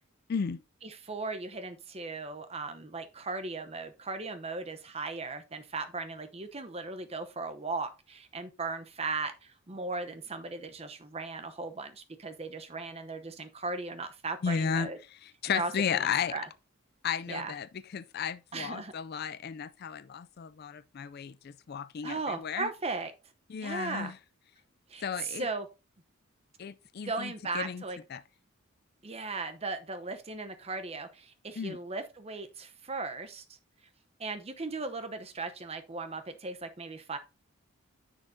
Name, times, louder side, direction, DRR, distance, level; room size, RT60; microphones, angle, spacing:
voice 1, 0.3-0.6 14.4-14.9 15.2-16.4 17.0-22.7 23.5-24.1 25.0-25.5 26.6-27.8 28.1-28.2 31.6-31.8, left 7 dB, 45° left, 0.4 m, -34 dB
voice 2, 0.8-15.0 15.5-16.5 17.3-17.5 18.5-18.9 22.0-23.1 23.6-24.1 24.9-25.7 27.0-28.0 29.0-33.4 34.2-37.2, right 3 dB, 30° right, 0.8 m, -37 dB
10.0 x 6.4 x 2.7 m
head